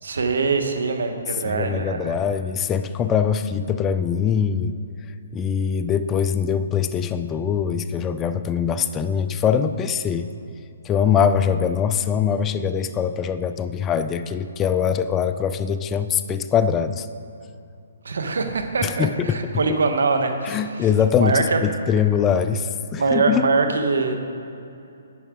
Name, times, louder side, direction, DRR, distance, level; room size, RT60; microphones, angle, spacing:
voice 1, 0.0-2.2 18.0-20.8 21.2-21.6 22.9-24.2, right 4 dB, 80° right, 5 dB, 1.3 m, -23 dB
voice 2, 1.4-4.8 5.3-10.3 10.8-17.1 18.8-19.4 20.4-23.5, left 7 dB, 15° left, 10 dB, 0.4 m, -22 dB
11.0 x 9.4 x 3.8 m, 2.7 s
hypercardioid pair, 155°, 0 cm